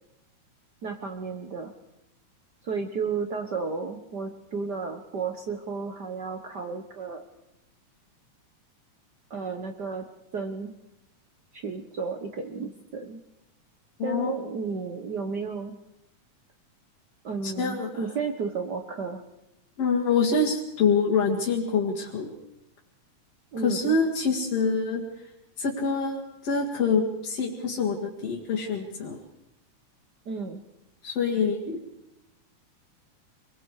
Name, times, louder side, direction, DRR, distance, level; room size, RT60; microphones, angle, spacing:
voice 1, 0.8-1.7 2.6-7.2 9.3-10.1 10.3-10.7 11.5-13.2 14.0-15.8 17.2-19.2 23.5-23.9 30.2-30.6, right 5 dB, 65° right, 6 dB, 1.0 m, -33 dB
voice 2, 14.0-14.3 17.4-18.0 19.8-22.3 23.6-25.0 25.6-29.2 31.0-31.8, left 4 dB, 55° left, -3 dB, 3.0 m, -26 dB
26.5 x 21.5 x 4.8 m, 0.88 s
omnidirectional pair, 3.4 m